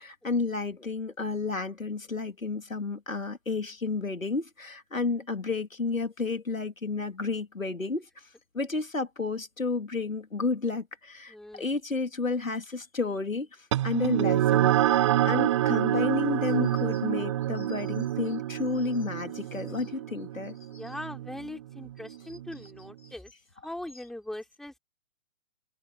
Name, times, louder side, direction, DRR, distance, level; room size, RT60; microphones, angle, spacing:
voice 1, 0.0-8.3 8.5-20.6, left 3 dB, 80° left, 3.2 m, -31 dB
voice 2, 11.3-11.7 20.8-23.3 23.6-24.8, left 1 dB, ahead, 3.0 m, -40 dB
sound 1, 13.7-22.6, right 13 dB, 25° right, 0.7 m, -27 dB
open air
figure-of-eight pair, 135°, 39 cm